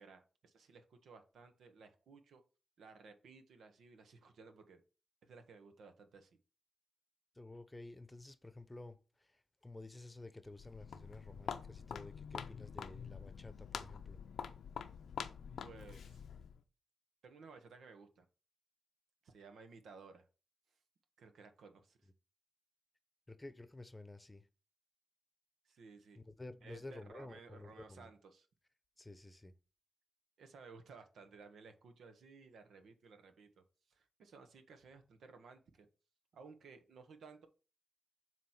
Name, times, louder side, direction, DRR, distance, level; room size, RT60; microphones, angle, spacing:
voice 1, 0.0-2.4 2.8-4.8 5.2-6.3 15.6-16.2 17.2-18.3 19.2-20.3 21.2-22.0 25.6-26.2 26.6-28.5 30.4-33.6 33.9-35.9 36.3-37.5, right 4 dB, 85° right, 1.0 m, -57 dB
voice 2, 7.3-14.2 23.3-24.5 26.2-28.1 29.0-29.5, left 2 dB, 20° left, 0.8 m, -52 dB
Walk footsteps, 10.5-16.6, left 7 dB, 85° left, 0.6 m, -46 dB
7.4 x 3.1 x 5.7 m
cardioid pair, 55°, 0 cm